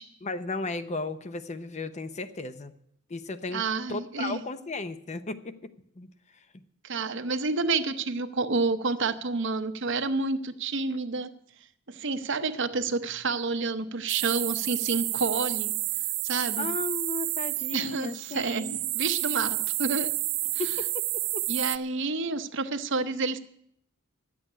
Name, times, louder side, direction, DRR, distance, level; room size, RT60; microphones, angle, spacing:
voice 1, 0.2-2.7 3.1-3.6 3.9-5.7 6.0-6.1 16.6-18.8 20.6-20.9 21.3-21.4, left 3 dB, 35° left, 12 dB, 0.7 m, -35 dB
voice 2, 3.5-4.4 6.8-11.3 11.9-15.7 16.2-16.7 17.7-18.7 18.9-20.1 20.5-20.7 21.5-23.4, right 4 dB, 65° right, 10 dB, 0.9 m, -29 dB
sound 1, 14.1-21.8, right 18 dB, 85° right, 0.5 m, -30 dB
11.5 x 8.4 x 10.0 m, 0.72 s
head